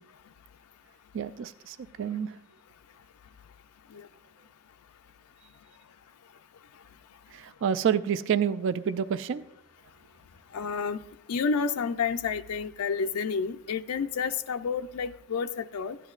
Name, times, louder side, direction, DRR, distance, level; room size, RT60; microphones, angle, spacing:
voice 1, 1.1-2.4 7.3-9.4, right 8 dB, 55° right, 13 dB, 0.3 m, -28 dB
voice 2, 10.5-11.0 11.3-16.0, left 5 dB, 85° left, 9 dB, 0.4 m, -30 dB
16.0 x 10.5 x 2.4 m, 0.80 s
head